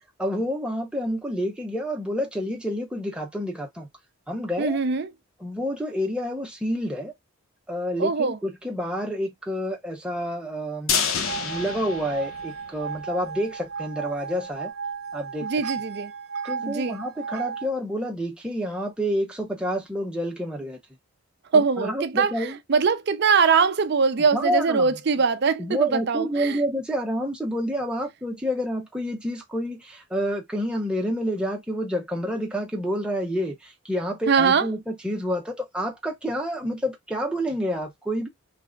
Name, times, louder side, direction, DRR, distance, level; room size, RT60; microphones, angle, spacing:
voice 1, 0.2-3.9 4.3-4.8 5.4-7.1 7.7-10.9 11.4-14.7 15.1-15.5 16.4-20.8 21.5-22.6 24.3-25.0 25.6-38.3, equal, 5° right, 0.8 m, -28 dB
voice 2, 4.6-5.1 8.0-8.4 15.4-16.1 16.6-17.0 21.5-26.6 34.3-34.7, right 5 dB, 50° right, 0.5 m, -22 dB
sound 1, 10.9-13.0 13.4-13.5 13.8-13.9, left 6 dB, 65° left, 0.7 m, -28 dB
sound 2, 11.2-17.7, right 6 dB, 90° right, 0.6 m, -35 dB
3.3 x 2.1 x 3.8 m
head